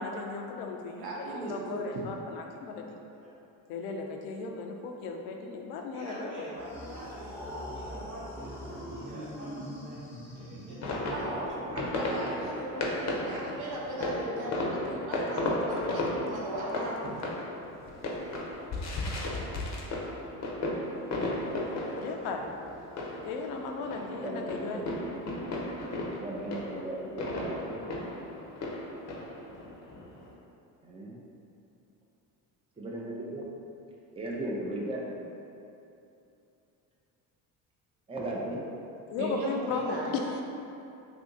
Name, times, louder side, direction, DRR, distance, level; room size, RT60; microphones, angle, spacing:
voice 1, 0.0-3.0 3.7-6.5 22.0-22.5 23.3-24.9 39.1-40.4, left 4 dB, 85° left, 2 dB, 0.5 m, -36 dB
voice 2, 1.0-1.8 2.6-2.9 11.1-17.1 18.2-18.3 39.2-40.2, right 1 dB, 60° right, -4 dB, 0.9 m, -37 dB
voice 3, 5.9-11.1, equal, 85° right, -8 dB, 1.2 m, -46 dB
sound 1, 6.5-11.4, equal, 5° left, 0.9 m, -42 dB
sound 2, 10.8-30.3, left 1 dB, 40° left, 0.6 m, -35 dB
voice 4, 23.9-25.1 26.2-28.0 30.8-31.2 32.8-33.4 34.2-35.3 38.1-38.6, right 1 dB, 15° right, -3 dB, 0.5 m, -37 dB
2.8 x 2.6 x 3.6 m, 2.7 s
supercardioid pair, 70°, 42 cm